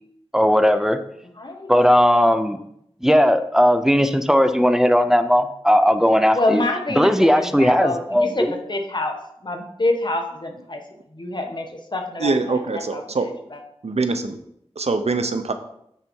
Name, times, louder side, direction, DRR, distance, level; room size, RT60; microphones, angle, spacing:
voice 1, 0.3-1.0 1.7-2.6 3.0-6.6 6.9-8.3, equal, 5° right, 9 dB, 0.6 m, -17 dB
voice 2, 1.4-1.7 6.3-9.2 9.4-10.8 11.1-11.7 11.9-12.6 12.9-13.0 13.5-13.6, left 2 dB, 45° left, 3 dB, 1.3 m, -26 dB
voice 3, 12.2-13.3 13.8-14.4 14.8-15.5, right 3 dB, 80° right, 8 dB, 0.7 m, -23 dB
9.7 x 4.2 x 4.5 m, 0.75 s
wide cardioid pair, 55°, 11 cm